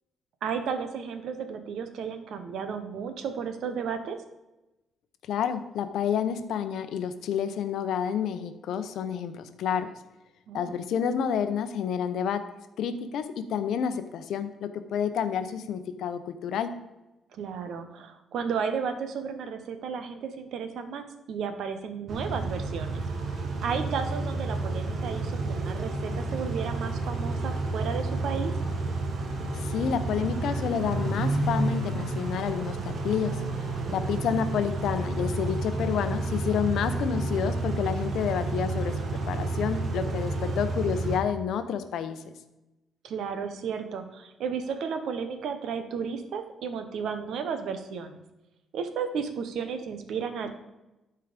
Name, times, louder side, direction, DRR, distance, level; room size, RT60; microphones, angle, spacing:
voice 1, 0.4-4.2 10.5-10.8 17.3-23.0 23.6-28.5 33.9-34.3 43.0-48.2 48.7-50.5, right 6 dB, 65° right, 8 dB, 1.0 m, -33 dB
voice 2, 5.3-9.9 10.5-12.4 12.8-16.7 29.5-33.4 33.9-42.3, left 8 dB, 65° left, 10 dB, 0.8 m, -29 dB
Car / Idling / Accelerating revving vroom, 22.1-41.2, right 2 dB, 40° right, 1.3 m, -30 dB
12.0 x 4.7 x 5.1 m, 1.0 s
cardioid pair, 155°, 0 cm